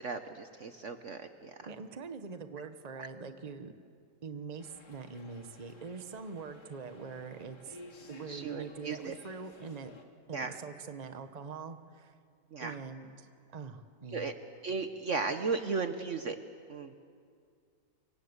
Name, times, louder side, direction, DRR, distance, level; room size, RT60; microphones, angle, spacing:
voice 1, 0.0-1.7 3.0-3.1 8.3-9.1 10.3-10.6 12.5-12.8 14.1-14.3 14.6-16.4 16.7-17.0, right 4 dB, 50° right, 8 dB, 1.3 m, -35 dB
voice 2, 1.6-3.7 4.2-9.9 10.3-12.1 12.6-14.3, right 5 dB, 25° right, 8 dB, 1.1 m, -44 dB
sound 1, 4.6-10.1, left 2 dB, 75° left, 3.0 m, -55 dB
29.0 x 25.0 x 8.2 m, 2.2 s
omnidirectional pair, 1.8 m